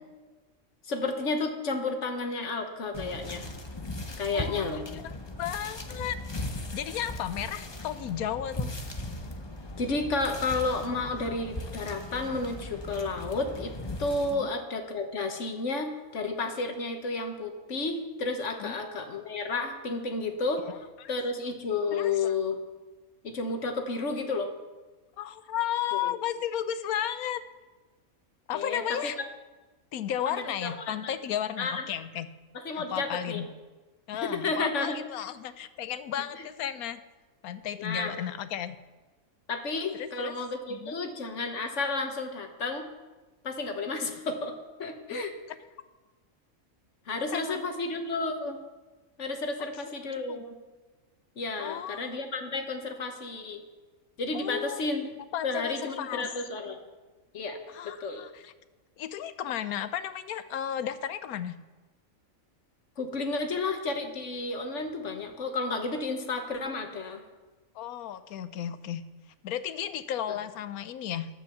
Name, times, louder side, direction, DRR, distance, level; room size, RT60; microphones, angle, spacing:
voice 1, 0.8-3.5 4.2-4.9 9.8-13.7 14.0-20.6 21.1-22.6 23.2-24.5 26.0-26.1 28.5-29.1 30.3-30.8 31.0-31.1 31.6-31.8 32.5-33.4 34.2-35.0 36.4-36.5 37.8-38.1 39.5-42.8 43.4-44.5 44.8-45.3 47.1-48.6 49.2-50.5 51.4-53.6 54.2-55.1 55.4-56.8 57.3-57.6 57.8-58.3 63.0-67.2 70.3-70.4, left 3 dB, 60° left, 5 dB, 1.6 m, -31 dB
sound 1, 2.9-14.3, left 2 dB, 25° left, 0.8 m, -38 dB
voice 2, 4.3-5.1 5.4-6.2 6.7-8.7 14.3-14.5 18.6-18.8 20.6-21.1 21.9-22.3 25.2-27.4 28.5-29.2 29.9-32.3 32.8-33.5 34.1-37.0 37.4-38.8 39.9-40.3 40.7-40.9 45.1-45.3 47.2-47.6 50.3-50.4 51.6-52.0 54.3-54.8 55.3-56.3 57.7-58.5 59.0-61.6 67.7-69.0 69.4-71.3, left 10 dB, 90° left, 12 dB, 1.2 m, -34 dB
10.5 x 8.1 x 7.2 m, 1.2 s
omnidirectional pair, 1.5 m